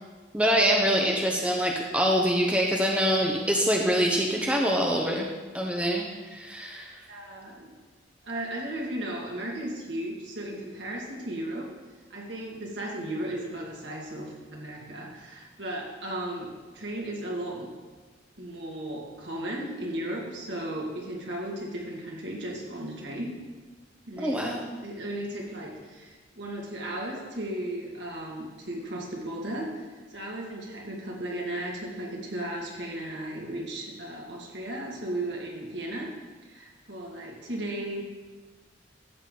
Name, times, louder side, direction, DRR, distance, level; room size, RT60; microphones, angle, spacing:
voice 1, 0.3-5.3 5.5-6.1 6.3-6.9 24.2-24.7, equal, 5° right, -1 dB, 0.9 m, -24 dB
voice 2, 7.1-7.7 8.2-11.7 12.1-17.7 18.4-23.3 24.1-36.1 36.4-38.0, right 1 dB, 65° right, -2 dB, 2.2 m, -35 dB
13.0 x 7.9 x 3.9 m, 1.4 s
head